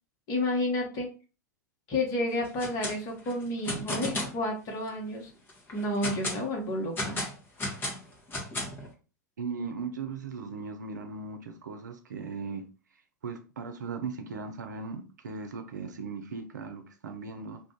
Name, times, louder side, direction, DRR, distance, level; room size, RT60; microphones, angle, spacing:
voice 1, 0.3-1.1 1.9-5.3 5.7-7.2, left 1 dB, 40° left, 1.3 m, -30 dB
sound 1, 2.4-3.0 3.2-4.4 4.9-5.0 5.5-6.4 7.0-8.9, left 1 dB, 20° left, 1.1 m, -33 dB
voice 2, 9.4-12.6 13.2-17.6, right 4 dB, 75° right, 0.6 m, -38 dB
2.6 x 2.5 x 3.7 m
figure-of-eight pair, 90°, 10 cm